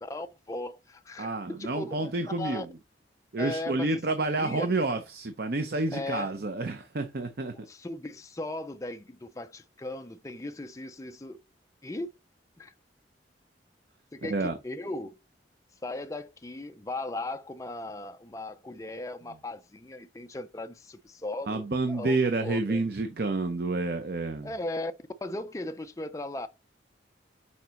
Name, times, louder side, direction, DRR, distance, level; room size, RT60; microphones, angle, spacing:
voice 1, 0.0-2.7 3.4-4.0 4.4-4.7 5.9-6.3 7.5-11.4 11.8-12.1 12.6-12.7 14.1-15.2 15.8-22.8 24.4-24.9 25.2-26.5, left 2 dB, 15° left, 0.4 m, -37 dB
voice 2, 1.2-2.7 3.3-7.5 14.2-14.6 21.5-24.5, right 2 dB, 55° right, 0.7 m, -29 dB
7.0 x 4.7 x 3.0 m
head